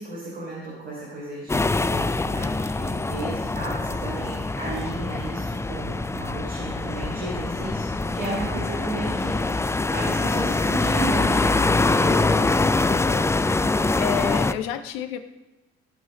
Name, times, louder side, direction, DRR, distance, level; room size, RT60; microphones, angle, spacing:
voice 1, 0.0-12.1, right 2 dB, 85° right, -6 dB, 3.6 m, -34 dB
sound 1, 1.5-14.5, left 3 dB, 10° left, 0.5 m, -24 dB
voice 2, 12.0-13.5 14.0-15.2, left 11 dB, 70° left, 10 dB, 1.0 m, -31 dB
16.5 x 6.4 x 5.2 m, 1.1 s
hypercardioid pair, 55°, 31 cm